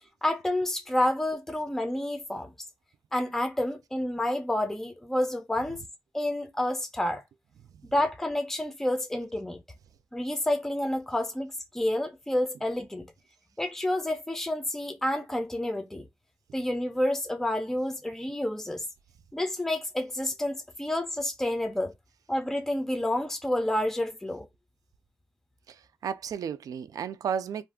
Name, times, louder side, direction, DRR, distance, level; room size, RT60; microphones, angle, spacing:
voice 1, 0.2-2.5 3.1-5.8 6.1-7.2 7.9-9.6 10.1-13.1 13.6-16.1 16.5-18.8 19.3-21.9 22.3-24.5, left 1 dB, 5° left, 0.5 m, -29 dB
voice 2, 25.7-27.6, right 7 dB, 85° right, 0.3 m, -33 dB
2.5 x 2.3 x 3.4 m
wide cardioid pair, 160°, 6 cm